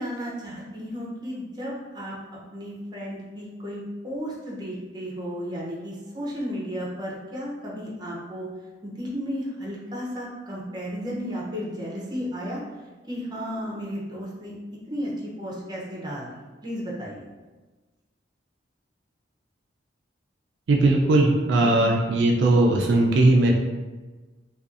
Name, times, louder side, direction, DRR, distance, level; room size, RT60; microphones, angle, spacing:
voice 1, 0.0-2.1 2.5-8.5 8.8-12.6 13.1-14.5 14.9-16.3 16.6-17.2 21.6-21.7, equal, 25° right, -5 dB, 0.5 m, -33 dB
voice 2, 20.7-23.5, right 2 dB, 70° right, 0 dB, 0.3 m, -19 dB
2.5 x 2.3 x 2.4 m, 1.3 s
head